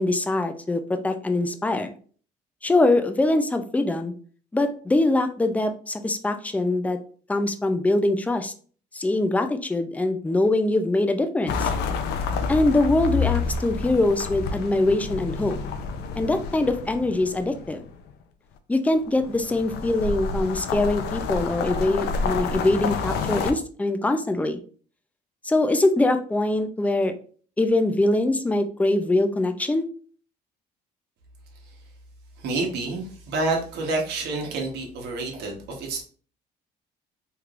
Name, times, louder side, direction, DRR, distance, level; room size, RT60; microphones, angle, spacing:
voice 1, 0.0-1.9 2.6-4.1 4.5-7.0 7.3-8.5 8.9-11.7 12.5-15.6 16.2-17.8 18.7-24.6 25.4-27.1 27.6-29.9, left 2 dB, 10° left, 8 dB, 0.4 m, -23 dB
sound 1, 11.5-17.9 19.1-23.5, left 5 dB, 80° left, 0.5 m, -29 dB
voice 2, 32.4-36.0, right 3 dB, 80° right, 0 dB, 1.1 m, -28 dB
3.2 x 3.1 x 2.5 m, 0.43 s
cardioid pair, 110°, 17 cm